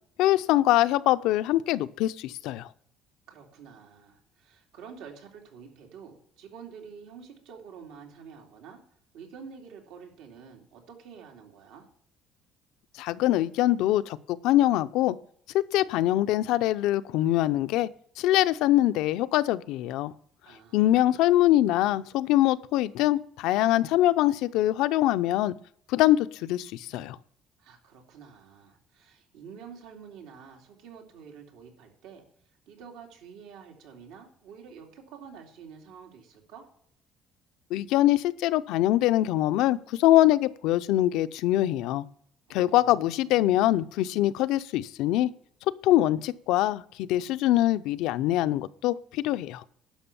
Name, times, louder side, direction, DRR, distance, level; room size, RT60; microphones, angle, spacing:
voice 1, 0.2-2.7 12.9-15.2 15.5-17.9 18.2-20.1 20.7-25.5 25.9-27.2 37.7-42.1 42.5-45.3 45.8-49.6, left 14 dB, 80° left, 14 dB, 0.5 m, -23 dB
voice 2, 3.3-8.8 9.1-11.9 20.4-21.1 27.6-32.2 32.7-36.7 42.5-43.4, right 6 dB, 85° right, 1 dB, 2.8 m, -48 dB
11.5 x 6.0 x 7.0 m, 0.65 s
cardioid pair, 135°, 0 cm